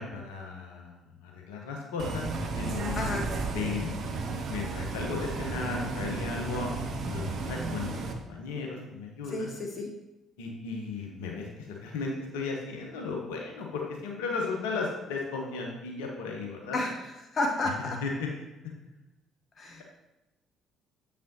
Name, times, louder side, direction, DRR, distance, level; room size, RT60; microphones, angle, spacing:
voice 1, 0.0-2.2 2.6-3.0 3.5-3.9 4.5-6.7 7.1-9.5 10.4-16.8 17.8-18.3, left 4 dB, 70° left, 0 dB, 1.0 m, -35 dB
Bus, 2.0-8.1, right 3 dB, 50° right, 0.7 m, -33 dB
voice 2, 3.0-3.3 9.3-9.9 16.7-16.9 17.3-18.0 19.6-19.8, left 2 dB, 40° left, 1 dB, 0.8 m, -31 dB
7.5 x 5.4 x 2.9 m, 0.97 s
figure-of-eight pair, 50°, 0 cm